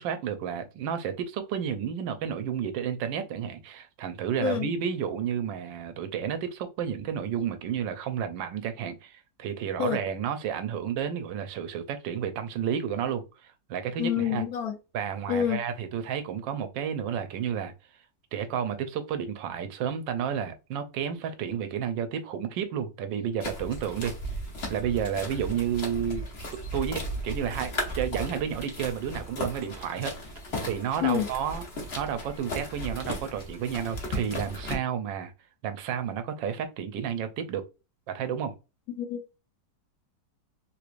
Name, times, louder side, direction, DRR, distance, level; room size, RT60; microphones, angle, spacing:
voice 1, 0.0-13.2 13.7-14.4 14.9-17.7 18.3-24.1 24.7-26.3 26.7-30.1 30.6-31.6 32.0-35.3 35.6-37.6 38.1-38.5, right 8 dB, 90° right, 1.3 m, -31 dB
voice 2, 14.0-14.7 15.3-15.6 31.0-31.3 38.9-39.4, left 9 dB, 65° left, 1.1 m, -27 dB
sound 1, 23.4-34.8, equal, 45° left, 1.1 m, -36 dB
3.5 x 3.1 x 2.4 m
omnidirectional pair, 1.9 m